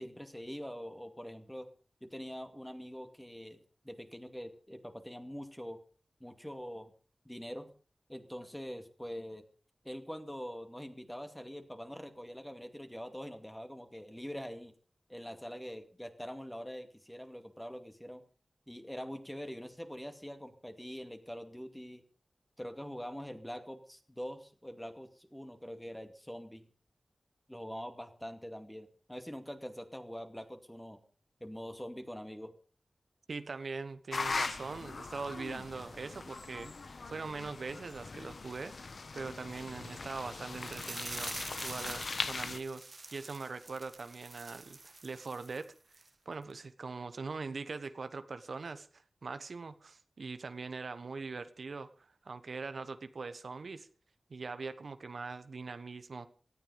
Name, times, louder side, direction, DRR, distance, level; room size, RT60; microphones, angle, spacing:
voice 1, 0.0-1.7 2.0-3.6 3.8-5.8 6.2-6.9 7.2-7.7 8.1-9.4 9.8-14.7 15.1-18.2 18.7-22.0 22.6-26.7 27.5-31.0 31.4-32.5, equal, 5° left, 7 dB, 2.4 m, -44 dB
voice 2, 33.3-36.7 37.1-42.9 43.1-45.7 46.2-53.9 54.3-56.3, right 4 dB, 75° right, 11 dB, 1.2 m, -42 dB
sound 1, 34.1-42.6, left 3 dB, 65° left, 1.2 m, -40 dB
sound 2, 40.6-45.6 45.9-46.1 46.5-46.6, right 3 dB, 50° right, 1.4 m, -46 dB
18.0 x 14.0 x 5.2 m, 0.39 s
wide cardioid pair, 90°, 0 cm